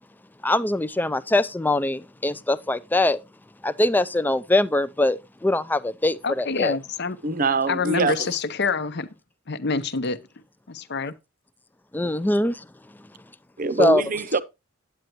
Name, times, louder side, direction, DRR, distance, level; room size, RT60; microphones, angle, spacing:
voice 1, 0.4-3.2 3.6-6.8 11.9-12.7 13.8-14.0, left 1 dB, 10° left, 0.4 m, -22 dB
voice 2, 6.2-7.2 7.7-9.1 9.5-10.2 10.7-11.1, left 4 dB, 55° left, 0.8 m, -26 dB
voice 3, 7.2-8.3 12.0-12.1 13.6-14.4, right 3 dB, 40° right, 0.7 m, -24 dB
9.2 x 9.1 x 3.0 m
head